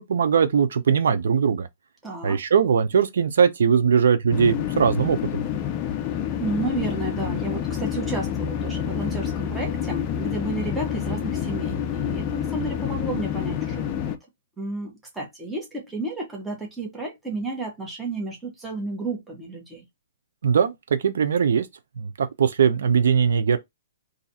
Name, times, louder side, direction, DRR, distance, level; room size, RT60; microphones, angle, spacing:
voice 1, 0.0-1.7 2.2-5.4 20.4-20.7 21.0-21.7 22.0-23.6, right 6 dB, 65° right, 0.5 m, -20 dB
voice 2, 2.0-2.4 6.4-14.1 14.6-19.8, right 3 dB, 5° right, 0.8 m, -32 dB
sound 1, 4.3-14.2, left 9 dB, 20° left, 0.4 m, -28 dB
2.6 x 2.4 x 4.0 m
hypercardioid pair, 175°, 0 cm